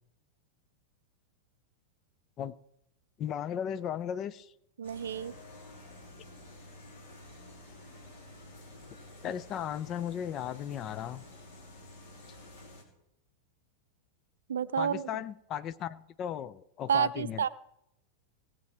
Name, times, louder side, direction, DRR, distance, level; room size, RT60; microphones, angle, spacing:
voice 1, 3.2-4.5 9.2-11.2 14.8-17.5, left 9 dB, 30° left, 16 dB, 0.5 m, -36 dB
sound 1, 4.8-12.8, left 1 dB, 60° left, 2.8 m, -51 dB
voice 2, 4.8-5.3 14.5-15.1 16.9-17.5, right 8 dB, 65° right, 16 dB, 0.5 m, -29 dB
18.0 x 7.5 x 4.5 m, 0.84 s
figure-of-eight pair, 90°, 0 cm